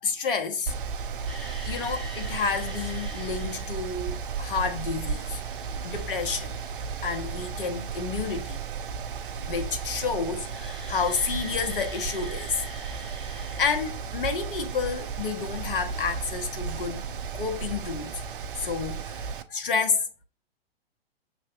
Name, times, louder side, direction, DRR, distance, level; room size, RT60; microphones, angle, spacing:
voice 1, 0.0-0.7 1.7-5.4 5.8-6.6 7.0-8.7 9.5-12.6 13.6-17.1 17.3-18.2 18.6-20.1, left 5 dB, 60° left, 0.9 m, -30 dB
Mechanical fan, 0.7-19.4, right 6 dB, 60° right, 0.6 m, -34 dB
sound 1, 1.3-3.7 4.9-8.7 10.4-14.3 17.3-17.4 18.6-19.0, equal, ahead, 1.3 m, -45 dB
6.3 x 3.3 x 2.4 m
figure-of-eight pair, 105°, 30 cm